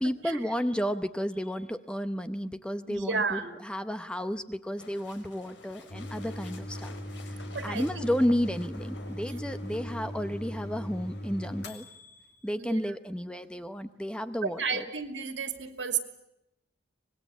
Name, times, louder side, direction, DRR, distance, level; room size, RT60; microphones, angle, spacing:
voice 1, 0.0-6.9 7.2-7.3 7.6-11.9 12.4-14.8, equal, 5° left, 9 dB, 0.8 m, -32 dB
voice 2, 2.9-3.6 7.5-8.1 12.6-12.8 14.4-16.0, right 5 dB, 70° right, 7 dB, 2.7 m, -32 dB
sound 1, 4.8-10.1, left 3 dB, 80° left, 4.6 m, -50 dB
sound 2, 5.9-12.4, equal, 60° left, 2.7 m, -39 dB
25.5 x 20.5 x 8.4 m, 0.88 s
head